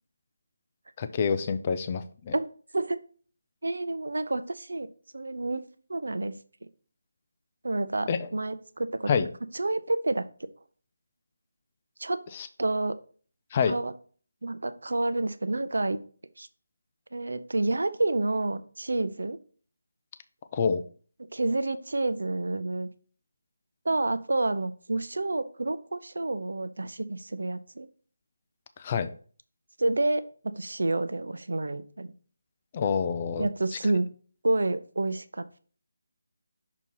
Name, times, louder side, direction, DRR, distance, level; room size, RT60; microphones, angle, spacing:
voice 1, 1.0-2.4 8.1-8.3 9.1-9.3 12.3-12.5 13.5-13.8 20.5-20.8 28.8-29.1 32.7-33.8, left 6 dB, 20° left, 10 dB, 0.3 m, -27 dB
voice 2, 2.3-3.0 3.6-4.9 5.1-5.6 5.9-6.4 7.6-9.1 9.5-10.3 12.0-12.2 12.6-13.0 13.7-13.9 14.4-16.0 16.4-16.5 17.1-19.4 21.3-22.9 23.8-27.9 29.8-32.1 33.4-34.1 34.4-35.6, right 2 dB, 80° right, 12 dB, 0.6 m, -29 dB
6.2 x 2.8 x 5.4 m, 0.42 s
figure-of-eight pair, 175°, 0 cm